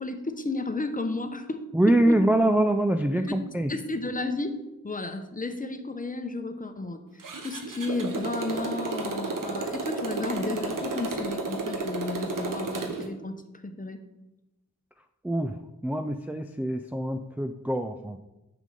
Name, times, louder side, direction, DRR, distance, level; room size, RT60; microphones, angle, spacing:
voice 1, 0.0-2.2 3.1-3.3 3.7-4.6 4.8-13.3 13.6-14.0, left 2 dB, 25° left, 8 dB, 0.8 m, -33 dB
voice 2, 1.7-3.7 15.2-15.5 15.8-18.2, right 1 dB, 5° right, 5 dB, 0.4 m, -24 dB
Motorcycle, 7.2-13.1, right 3 dB, 80° right, 1.1 m, -32 dB
6.2 x 5.2 x 5.4 m, 1.0 s
cardioid pair, 55°, 32 cm